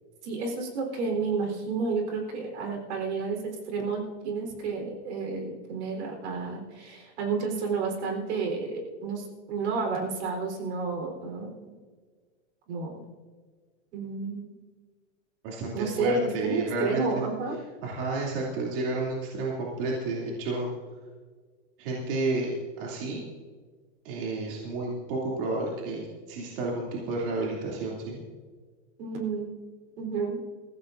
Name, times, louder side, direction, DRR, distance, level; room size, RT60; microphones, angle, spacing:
voice 1, 0.2-11.7 12.7-13.0 13.9-14.5 15.7-17.6 29.0-29.5 30.0-30.4, right 4 dB, 70° right, 2 dB, 4.0 m, -31 dB
voice 2, 15.4-17.3 17.8-20.7 21.8-23.2 24.0-28.2, right 2 dB, 50° right, -4 dB, 2.8 m, -31 dB
22.0 x 15.0 x 2.6 m, 1.5 s
supercardioid pair, 165°, 35 cm